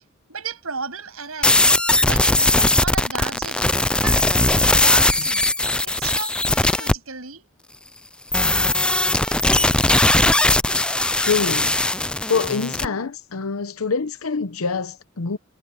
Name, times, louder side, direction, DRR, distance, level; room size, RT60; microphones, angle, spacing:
voice 1, 0.3-3.7 4.0-7.5, right 5 dB, 80° right, 7.3 m, -34 dB
sound 1, 1.4-6.9 8.3-12.9, left 2 dB, 5° left, 0.3 m, -19 dB
voice 2, 11.2-11.8 12.3-15.4, left 5 dB, 80° left, 0.8 m, -25 dB
head